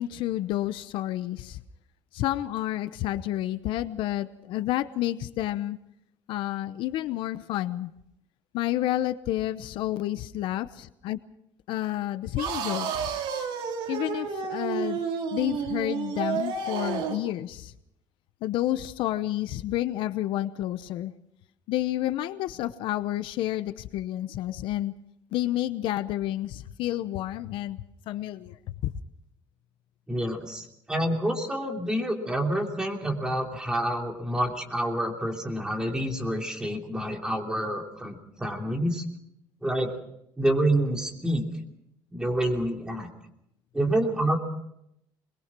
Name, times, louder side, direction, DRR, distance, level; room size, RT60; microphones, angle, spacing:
voice 1, 0.0-1.6 2.1-5.8 6.3-7.9 8.5-11.2 11.7-13.1 13.9-15.0 15.3-17.7 18.4-21.1 21.7-24.9 25.3-28.9, left 14 dB, 75° left, 13 dB, 0.9 m, -30 dB
sound 1, 12.4-17.3, right 6 dB, 75° right, 3.0 m, -31 dB
voice 2, 30.1-39.0 39.6-39.9 40.4-41.5 42.1-43.1 43.7-44.4, right 1 dB, 10° right, 2 dB, 3.0 m, -28 dB
22.0 x 22.0 x 6.1 m, 0.79 s
cardioid pair, 155°, 9 cm